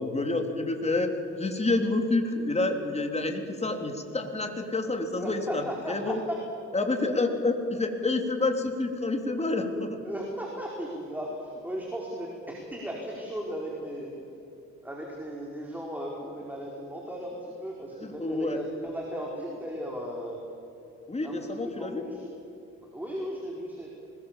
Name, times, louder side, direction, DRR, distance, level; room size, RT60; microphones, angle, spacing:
voice 1, 0.0-6.2 6.7-10.0 18.0-18.6 21.1-22.0, left 2 dB, 20° left, 4 dB, 3.3 m, -28 dB
voice 2, 5.1-6.4 10.0-14.2 14.8-20.4 21.2-22.3 22.9-23.9, equal, 5° right, -2 dB, 4.6 m, -36 dB
25.0 x 21.5 x 7.5 m, 2.9 s
cardioid pair, 90°, 30 cm